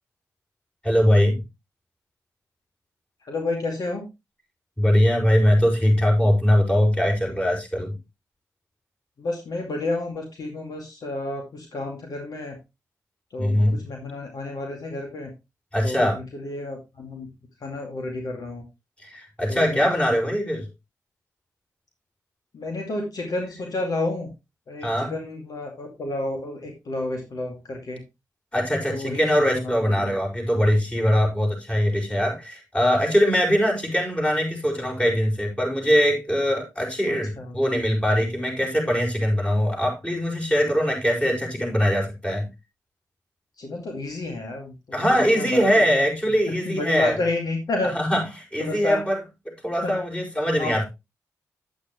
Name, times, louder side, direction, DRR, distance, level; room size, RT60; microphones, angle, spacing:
voice 1, 0.8-1.4 4.8-8.0 13.4-13.8 15.7-16.2 19.0-20.7 24.8-25.1 28.5-42.5 44.9-47.2 47.9-49.2 49.6-50.8, equal, 15° left, 0 dB, 5.5 m, -22 dB
voice 2, 3.3-4.1 9.2-12.6 13.3-15.3 15.8-17.3 17.6-18.6 19.5-19.9 22.5-24.3 24.7-28.0 28.9-30.2 37.1-37.6 43.6-46.0 46.7-47.9 48.6-49.0 49.8-50.0 50.6-50.8, left 2 dB, 65° left, 2 dB, 2.2 m, -30 dB
9.3 x 8.3 x 3.1 m, 0.23 s
supercardioid pair, 40°, 7 cm